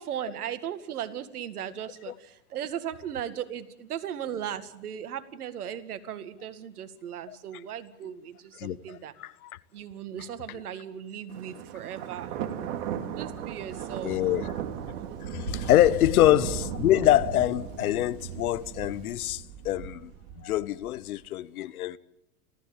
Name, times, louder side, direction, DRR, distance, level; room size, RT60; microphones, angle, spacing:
voice 1, 0.0-9.1 9.7-12.3 13.2-14.2 15.6-15.9, right 9 dB, 75° right, 2.1 m, -37 dB
voice 2, 8.6-9.3 14.0-14.5 15.3-20.1 20.4-22.0, left 14 dB, 70° left, 1.1 m, -25 dB
Thunder, 11.3-21.1, right 9 dB, 55° right, 2.6 m, -36 dB
30.0 x 15.0 x 8.8 m
hypercardioid pair, 105°, 45 cm